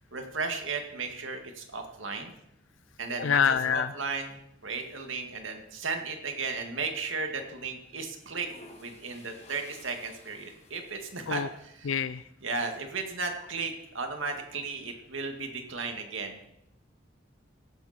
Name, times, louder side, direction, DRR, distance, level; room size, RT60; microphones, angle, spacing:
voice 1, 0.1-2.3 3.0-8.5 8.8-11.9 12.4-16.5, right 4 dB, 85° right, 5 dB, 2.2 m, -35 dB
voice 2, 3.2-3.9 11.3-11.5 11.9-12.2, left 7 dB, 80° left, 13 dB, 0.4 m, -26 dB
sound 1, 8.3-11.9, left 2 dB, 35° left, 2.1 m, -54 dB
16.5 x 12.0 x 4.4 m, 0.82 s
head